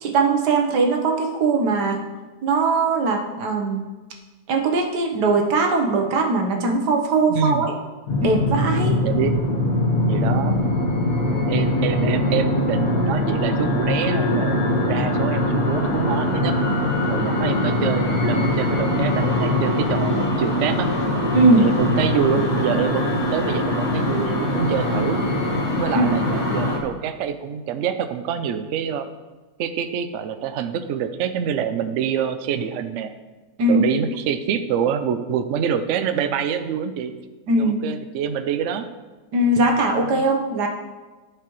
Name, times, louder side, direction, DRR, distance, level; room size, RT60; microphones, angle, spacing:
voice 1, 0.0-2.0 2.4-3.8 4.5-7.7 8.2-9.0 21.3-21.7 25.9-26.1 33.6-33.9 37.5-37.8 39.3-40.7, right 3 dB, 70° right, 2 dB, 1.5 m, -20 dB
voice 2, 7.3-7.7 9.0-9.4 10.1-10.6 11.5-16.5 17.1-20.9 21.5-25.2 25.8-29.1 29.6-33.1 33.7-37.1 37.6-38.9 40.0-40.3, right 8 dB, 85° right, 9 dB, 0.6 m, -26 dB
sound 1, 8.1-26.8, left 1 dB, 55° left, 1.6 m, -22 dB
13.5 x 4.9 x 3.1 m, 1.3 s
omnidirectional pair, 1.9 m